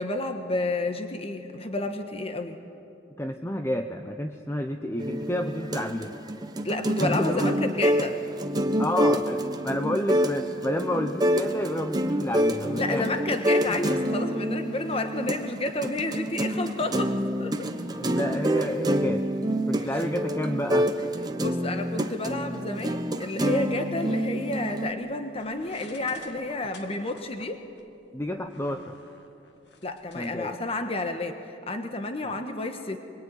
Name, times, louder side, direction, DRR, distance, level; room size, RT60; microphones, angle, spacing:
voice 1, 0.0-2.6 6.6-8.2 12.8-17.7 19.8-19.9 21.4-27.6 29.8-33.0, left 2 dB, 35° left, 6 dB, 1.3 m, -30 dB
voice 2, 3.2-6.2 7.0-7.5 8.8-13.1 13.7-13.8 17.9-19.3 19.7-20.9 28.1-29.0 30.1-30.6 32.2-32.3, left 1 dB, 15° left, 6 dB, 0.8 m, -30 dB
sound 1, 5.0-24.9, equal, 25° right, 1.1 m, -27 dB
sound 2, 25.3-30.3, left 3 dB, 70° left, 1.9 m, -50 dB
24.5 x 23.0 x 9.7 m, 2.7 s
head